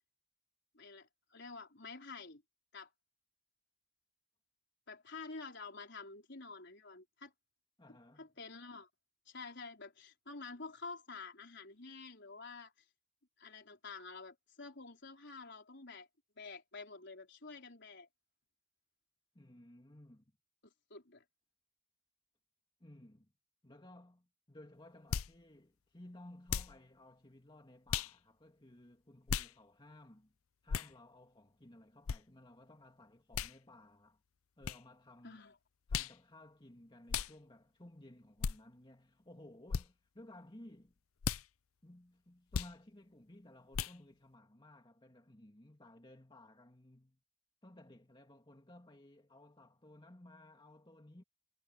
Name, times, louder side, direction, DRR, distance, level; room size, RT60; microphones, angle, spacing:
voice 1, 0.7-2.4 2.7-2.9 4.9-7.3 8.2-8.9 9.3-12.7 13.4-16.1 16.4-18.1 20.6-21.2 35.2-35.5, left 4 dB, 55° left, 4.6 m, -49 dB
voice 2, 7.8-8.3 19.3-20.3 22.8-23.3 23.6-30.3 30.6-34.2 34.6-35.5 35.9-40.9 41.8-47.2 47.6-51.2, left 1 dB, 25° left, 2.4 m, -57 dB
sound 1, 25.1-25.3 26.5-26.8 27.9-28.1 29.3-29.5 30.7-30.9 32.1-32.2 33.3-33.5 34.6-34.8 35.9-36.2 37.1-37.3 38.4-38.6 39.7-39.9 41.2-41.4 42.5-42.7 43.7-44.0, left 7 dB, 85° left, 0.6 m, -36 dB
head